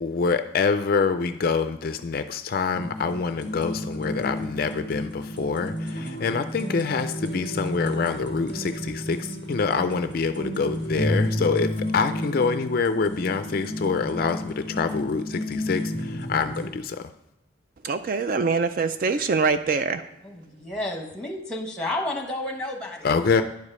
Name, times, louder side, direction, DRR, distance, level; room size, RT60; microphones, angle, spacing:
voice 1, 0.0-17.0 23.0-23.4, left 5 dB, 45° left, 9 dB, 0.3 m, -26 dB
sound 1, 2.7-16.7, left 1 dB, 60° right, 2.0 m, -32 dB
voice 2, 17.8-20.0, right 4 dB, 45° right, 10 dB, 0.3 m, -24 dB
voice 3, 20.2-23.1, left 1 dB, 5° left, 2 dB, 1.2 m, -31 dB
10.5 x 5.0 x 5.4 m, 0.92 s
head